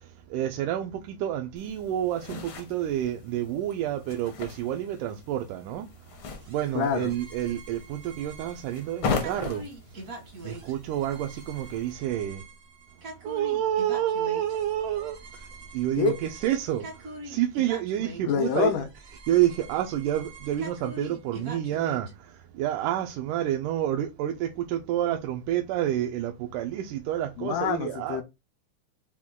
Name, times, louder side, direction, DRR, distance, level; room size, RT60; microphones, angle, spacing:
voice 1, 0.0-12.4 13.2-18.9 19.3-28.2, right 12 dB, 90° right, 2.1 m, -29 dB
sound 1, 1.6-11.9, left 5 dB, 70° left, 1.2 m, -38 dB
sound 2, 6.4-22.1, right 2 dB, 60° right, 0.8 m, -44 dB
voice 2, 6.8-7.1 16.0-16.2 18.3-18.9 27.4-28.2, left 7 dB, 85° left, 2.2 m, -26 dB
6.1 x 2.2 x 3.5 m
omnidirectional pair, 3.6 m